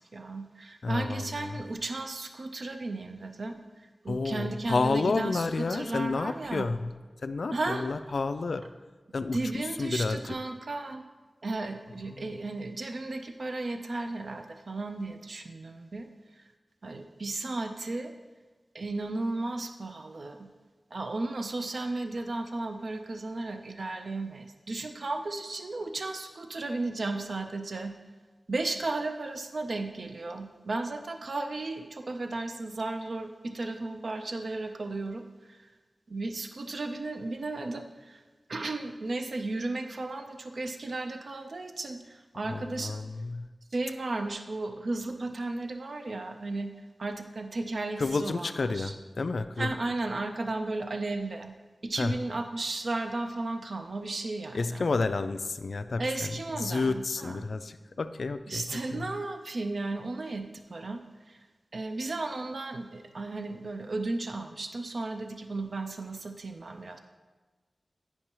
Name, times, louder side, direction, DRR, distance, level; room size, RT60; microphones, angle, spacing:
voice 1, 0.1-3.6 4.0-6.7 7.5-7.8 9.3-11.0 11.4-16.1 16.8-18.1 18.7-20.5 20.9-27.9 28.5-35.6 36.1-38.2 38.5-43.0 43.7-46.7 47.0-48.9 49.6-51.5 51.8-54.9 56.0-57.4 58.5-61.4 61.7-67.0, right 2 dB, 70° right, 6 dB, 0.5 m, -34 dB
voice 2, 0.8-1.6 4.1-6.9 7.2-8.7 9.1-10.4 12.1-12.4 42.5-43.5 48.0-49.8 52.0-52.2 54.5-59.1, left 3 dB, 75° left, 11 dB, 0.3 m, -30 dB
9.6 x 5.4 x 3.0 m, 1.3 s
wide cardioid pair, 65°, 0 cm